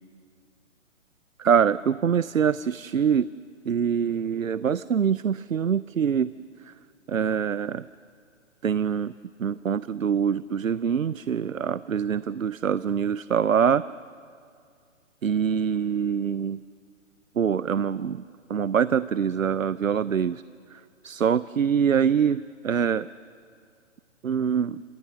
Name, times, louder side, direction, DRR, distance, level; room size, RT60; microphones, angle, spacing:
voice 1, 1.4-3.3 3.7-6.3 7.1-7.9 8.6-9.1 9.4-13.8 15.2-16.6 17.4-18.2 18.5-20.4 21.0-23.1 24.2-24.8, right 7 dB, 80° right, 18 dB, 0.6 m, -24 dB
27.5 x 27.0 x 6.6 m, 2.2 s
figure-of-eight pair, 130°, 40 cm